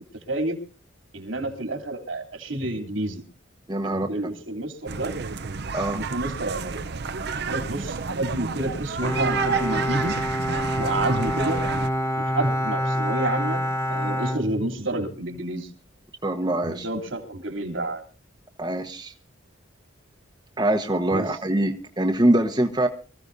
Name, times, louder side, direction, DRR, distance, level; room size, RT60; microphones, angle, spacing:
voice 1, 0.1-0.6 1.1-3.2 3.8-5.1 5.9-6.8 7.3-10.1 10.8-11.6 12.2-13.6 13.9-15.7 16.6-18.0 21.1-21.3, right 2 dB, 85° right, 4 dB, 3.2 m, -29 dB
voice 2, 3.7-4.1 5.7-6.0 16.2-16.9 18.6-19.1 20.6-22.9, right 1 dB, 20° right, 3 dB, 1.0 m, -23 dB
sound 1, 4.9-11.9, right 5 dB, 55° right, 0.7 m, -30 dB
Bowed string instrument, 9.0-15.2, equal, 15° left, 1.0 m, -27 dB
24.5 x 15.5 x 2.7 m, 0.35 s
head